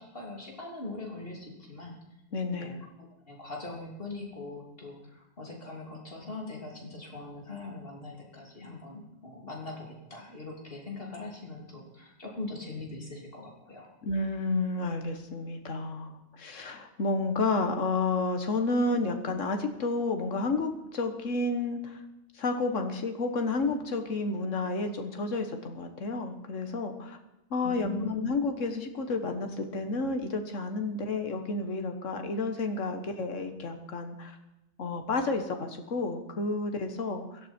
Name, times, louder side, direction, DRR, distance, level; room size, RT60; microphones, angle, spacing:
voice 1, 0.0-1.9 2.6-2.8 3.3-13.9 27.6-28.3, left 3 dB, 50° left, -1 dB, 3.3 m, -41 dB
voice 2, 2.3-2.8 14.0-22.0 22.3-27.2 27.5-34.4 34.8-37.4, left 3 dB, 85° left, 6 dB, 1.8 m, -31 dB
16.5 x 12.5 x 4.5 m, 0.96 s
omnidirectional pair, 1.3 m